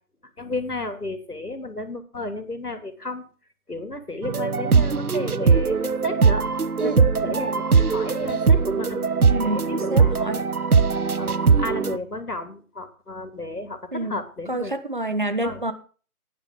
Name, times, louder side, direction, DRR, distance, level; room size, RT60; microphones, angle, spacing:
voice 1, 0.4-3.2 3.7-6.4 6.8-9.1 9.4-10.3 11.2-14.7 15.4-15.6, left 2 dB, 80° left, 8 dB, 2.9 m, -33 dB
sound 1, 4.2-12.0, right 5 dB, 70° right, 0.9 m, -20 dB
voice 2, 9.3-10.5 13.9-14.2 14.5-15.7, right 2 dB, 35° right, 11 dB, 1.2 m, -28 dB
17.0 x 10.0 x 3.7 m, 0.38 s
figure-of-eight pair, 160°, 45 cm